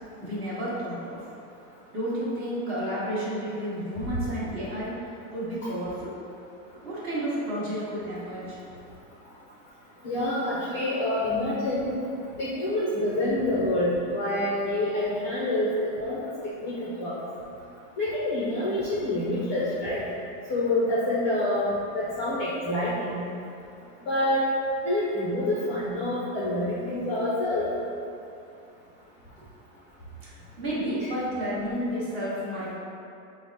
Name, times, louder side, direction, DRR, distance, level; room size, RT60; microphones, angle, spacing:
voice 1, 0.2-1.2 1.9-4.9 5.3-6.1 6.8-8.6 30.6-32.8, equal, 25° right, -9 dB, 1.1 m, -31 dB
voice 2, 10.0-11.9 12.4-15.7 16.0-16.2 16.6-17.2 18.0-20.1 20.5-21.7 21.9-23.2 24.1-24.4 24.8-27.7, left 1 dB, 25° left, -9 dB, 0.4 m, -27 dB
4.9 x 2.1 x 3.9 m, 2.6 s
supercardioid pair, 160°, 48 cm